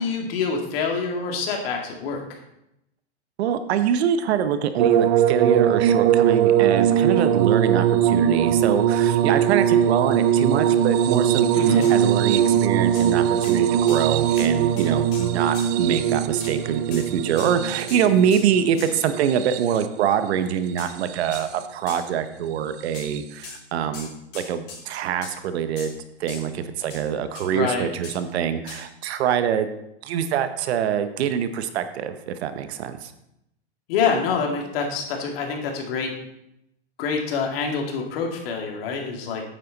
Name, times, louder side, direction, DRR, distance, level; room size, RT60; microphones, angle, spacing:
voice 1, 0.0-2.2 11.5-11.9 27.5-27.9 33.9-36.1 37.0-39.4, left 5 dB, 55° left, 2 dB, 2.1 m, -26 dB
voice 2, 3.4-25.9 26.2-29.7 30.0-33.1, right 8 dB, 65° right, 10 dB, 1.0 m, -24 dB
sound 1, 4.8-20.0 20.9-21.6 23.0-23.2, right 9 dB, 40° right, 0.4 m, -21 dB
sound 2, 11.8-11.9 12.9-13.1 13.4-13.6 13.9-14.0 14.4-14.5 14.8-15.7 16.4-16.6 16.9-17.1 17.4-17.5 17.9-18.0 18.3-18.4 18.8-18.9 20.8-20.9 21.3-21.5 21.9-22.0 22.9-23.1 23.4-23.6 23.9-24.8 25.2-25.3 25.8-25.9 26.3-26.4 26.9-27.0 27.3-27.5 28.0-28.2 28.7-28.8, left 4 dB, 40° left, 4.0 m, -39 dB
9.1 x 7.6 x 4.0 m, 0.83 s
hypercardioid pair, 135°, 34 cm